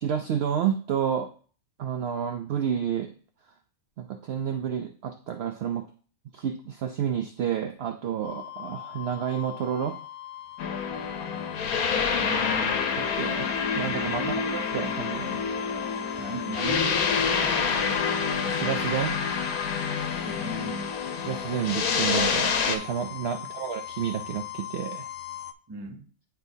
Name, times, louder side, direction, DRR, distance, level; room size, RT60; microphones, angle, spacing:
voice 1, 0.0-1.3 1.8-3.1 4.0-5.9 6.3-10.0 13.2-15.5 18.5-19.1 21.2-25.1, right 8 dB, 65° right, 0.6 m, -30 dB
sound 1, 8.2-25.5, left 12 dB, 65° left, 0.7 m, -41 dB
sound 2, 10.6-22.8, left 6 dB, 85° left, 1.2 m, -27 dB
voice 2, 12.0-12.9 14.1-14.5 16.2-17.9 20.2-21.0 23.4-23.6 25.7-26.1, right 1 dB, 20° right, 0.7 m, -38 dB
9.9 x 4.3 x 2.7 m
omnidirectional pair, 1.5 m